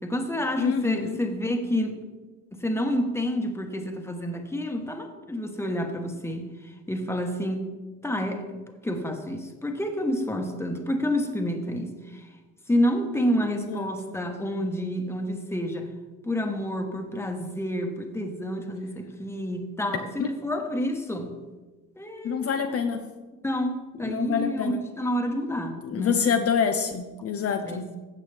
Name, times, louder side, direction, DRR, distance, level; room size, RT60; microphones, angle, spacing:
voice 1, 0.0-2.0 2.5-6.5 6.9-7.7 8.0-8.4 8.8-12.2 12.7-15.9 16.2-21.3 22.0-22.5 23.4-26.2 27.6-28.0, equal, 10° left, 4 dB, 1.3 m, -29 dB
voice 2, 0.6-1.2 13.4-13.9 20.2-20.3 22.2-23.0 23.9-24.8 25.8-28.0, left 6 dB, 50° left, 6 dB, 0.7 m, -27 dB
15.5 x 6.0 x 3.4 m, 1.2 s
cardioid pair, 90°, 30 cm